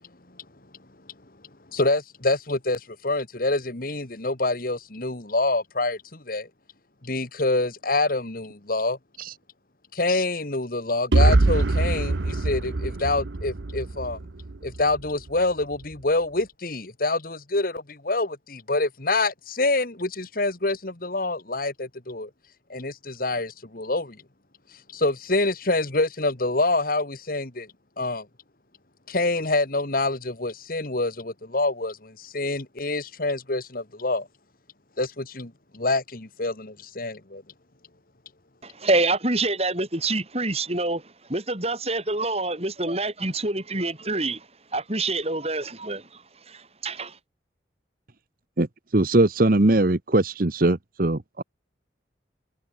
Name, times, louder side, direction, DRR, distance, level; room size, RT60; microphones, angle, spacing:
voice 1, 1.7-6.5 7.0-9.0 9.9-14.2 14.6-22.3 22.7-24.2 24.9-27.7 28.0-28.3 29.1-34.3 35.0-37.4, left 2 dB, 50° left, 1.9 m, -26 dB
sound 1, 11.1-15.0, right 2 dB, 75° right, 0.9 m, -23 dB
voice 2, 38.6-44.5 44.7-47.2, right 2 dB, 35° right, 7.2 m, -27 dB
voice 3, 48.9-51.4, right 2 dB, 50° right, 1.0 m, -21 dB
head